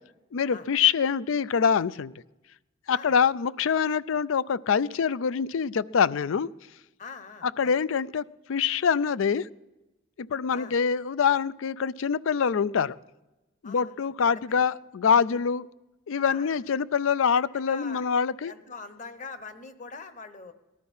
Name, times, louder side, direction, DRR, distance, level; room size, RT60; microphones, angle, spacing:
voice 1, 0.3-2.1 2.9-6.5 7.4-8.2 8.5-9.5 10.2-12.9 13.6-15.7 16.1-18.5, left 6 dB, 80° left, 19 dB, 0.4 m, -25 dB
voice 2, 7.0-7.8 10.5-10.8 13.6-14.6 16.3-16.6 17.5-18.1 18.4-20.5, left 4 dB, 40° left, 11 dB, 1.1 m, -43 dB
19.0 x 12.5 x 5.5 m, 1.0 s
head